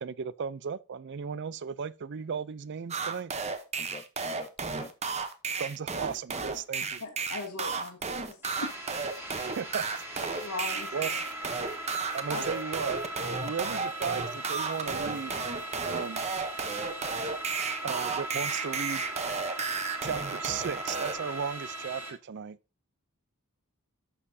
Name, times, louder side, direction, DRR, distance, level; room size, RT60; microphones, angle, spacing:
voice 1, 0.0-3.3 5.6-7.0 9.6-10.0 10.9-11.1 12.1-13.0 13.4-15.5 15.8-16.2 17.8-19.0 20.0-22.6, right 6 dB, 50° right, 0.4 m, -35 dB
sound 1, 2.9-21.2, right 4 dB, 30° right, 0.8 m, -33 dB
voice 2, 3.8-4.9, left 3 dB, 25° left, 0.6 m, -47 dB
voice 3, 7.0-9.3 10.4-11.2 12.3-12.5, left 2 dB, 85° left, 1.5 m, -40 dB
sound 2, 8.4-22.1, right 1 dB, 10° right, 2.4 m, -39 dB
11.0 x 6.6 x 2.7 m
head